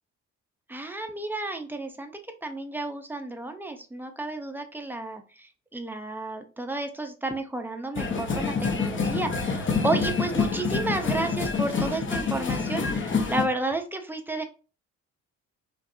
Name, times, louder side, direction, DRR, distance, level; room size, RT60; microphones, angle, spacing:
voice 1, 0.7-2.1 2.4-14.4, right 2 dB, 5° right, 5 dB, 0.7 m, -32 dB
sound 1, 8.0-13.4, left 4 dB, 40° left, 1.1 m, -27 dB
5.3 x 2.6 x 2.7 m, 0.35 s
cardioid pair, 90°, 30 cm